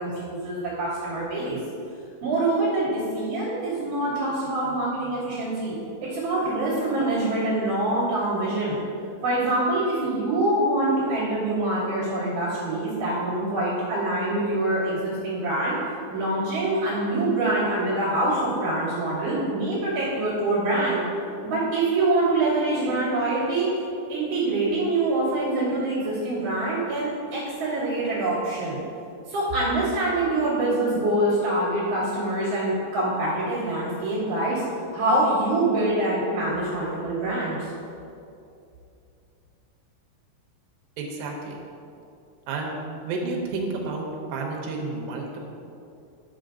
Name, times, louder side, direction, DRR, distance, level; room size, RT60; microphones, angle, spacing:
voice 1, 0.0-1.6 2.2-8.8 9.2-15.7 16.1-21.0 21.4-23.7 24.1-28.8 29.3-34.6 34.9-37.7, right 2 dB, 55° right, -11 dB, 3.0 m, -25 dB
voice 2, 41.0-41.6 42.5-42.7 43.0-45.4, right 3 dB, 80° right, 0 dB, 3.0 m, -31 dB
11.0 x 6.8 x 2.6 m, 2.6 s
omnidirectional pair, 4.9 m